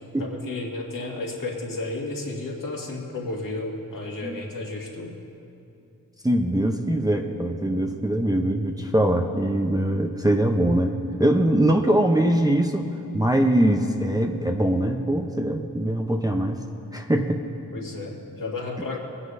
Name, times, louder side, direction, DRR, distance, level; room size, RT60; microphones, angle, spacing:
voice 1, 0.2-5.1 17.7-19.0, left 2 dB, 60° left, -2 dB, 2.1 m, -32 dB
voice 2, 6.2-12.9 13.1-16.6 16.9-17.4, right 1 dB, 10° right, 2 dB, 0.7 m, -22 dB
21.0 x 9.7 x 2.7 m, 2.7 s
cardioid pair, 55°, 37 cm